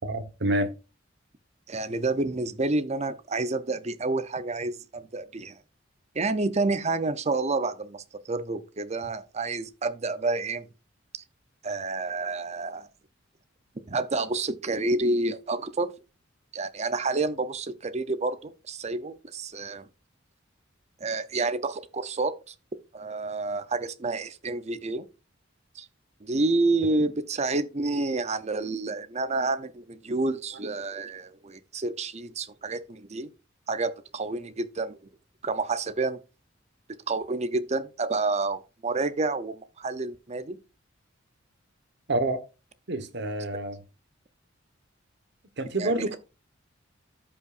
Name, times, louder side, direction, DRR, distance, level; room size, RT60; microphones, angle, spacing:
voice 1, 0.0-0.7 42.1-42.4 42.9-43.8 45.6-46.2, right 1 dB, 60° right, 1.2 m, -27 dB
voice 2, 1.7-5.6 6.1-10.7 11.1-11.2 11.6-12.9 13.9-15.9 16.5-19.9 21.0-22.5 22.9-25.1 25.8-25.9 26.2-33.3 33.7-35.1 35.4-36.2 37.1-40.6 45.8-46.1, right 3 dB, 35° right, 0.7 m, -29 dB
13.5 x 5.4 x 2.5 m
head